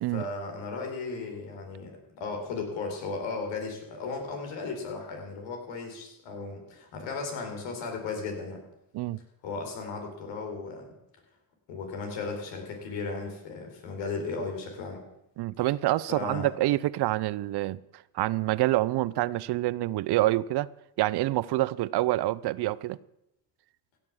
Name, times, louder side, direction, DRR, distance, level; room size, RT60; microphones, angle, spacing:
voice 1, 0.1-8.6 9.4-10.9 11.7-15.0 16.1-16.5, left 4 dB, 80° left, 4.4 m, -36 dB
voice 2, 15.4-17.8 18.1-20.7 21.0-23.0, right 16 dB, 60° right, 0.6 m, -27 dB
16.0 x 7.5 x 7.3 m
supercardioid pair, 75°, 44 cm